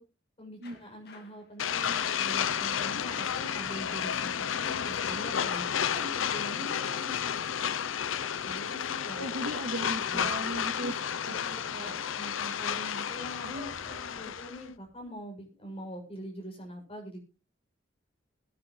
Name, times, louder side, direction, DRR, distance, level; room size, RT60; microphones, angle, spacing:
voice 1, 0.4-5.6 5.9-7.3 8.4-9.3 10.0-10.3 10.7-10.9 11.2-13.7 14.0-17.2, equal, 30° left, 1 dB, 6.9 m, -43 dB
sound 1, 0.6-7.4 12.9-15.1, left 2 dB, 55° left, 2.2 m, -55 dB
sound 2, 1.6-14.6, left 8 dB, 90° left, 0.6 m, -32 dB
voice 2, 9.1-12.0 13.4-13.7, right 1 dB, 75° right, 3 dB, 2.6 m, -38 dB
21.5 x 9.8 x 3.1 m, 0.31 s
head